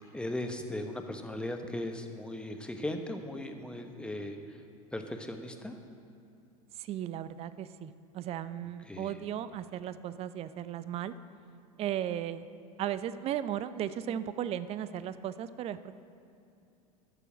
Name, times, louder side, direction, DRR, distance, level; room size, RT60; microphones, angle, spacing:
voice 1, 0.1-4.6 4.9-5.7 8.8-9.2, left 1 dB, 5° left, 5 dB, 1.0 m, -38 dB
voice 2, 6.8-11.1 11.8-12.5 12.8-15.9, right 10 dB, 30° right, 14 dB, 0.5 m, -36 dB
14.0 x 6.8 x 6.1 m, 2.6 s
figure-of-eight pair, 80°, 20 cm